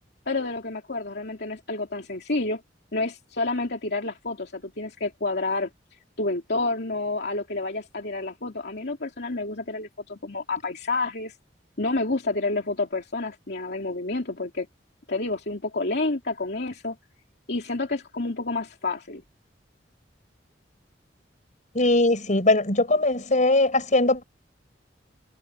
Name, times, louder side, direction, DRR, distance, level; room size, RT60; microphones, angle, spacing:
voice 1, 0.3-2.6 2.9-5.7 6.2-11.3 11.8-14.7 15.1-17.0 17.5-19.2, left 3 dB, 65° left, 2.9 m, -29 dB
voice 2, 21.7-24.2, left 2 dB, 45° left, 5.6 m, -20 dB
head